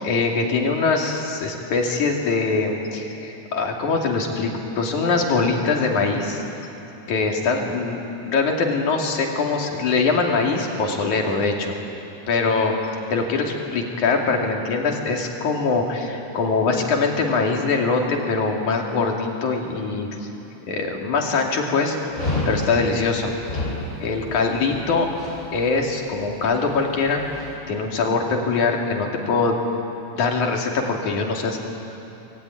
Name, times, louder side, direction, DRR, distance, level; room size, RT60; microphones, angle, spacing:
voice 1, 0.0-6.4 7.1-8.0 8.3-11.7 12.3-12.7 13.1-20.3 20.7-22.0 22.5-25.1 25.5-27.2 27.7-29.6 30.1-31.6, left 4 dB, 65° left, 1 dB, 3.9 m, -23 dB
Dog, 22.1-27.5, left 2 dB, 25° left, 8.3 m, -31 dB
25.0 x 20.5 x 9.9 m, 2.9 s
omnidirectional pair, 3.7 m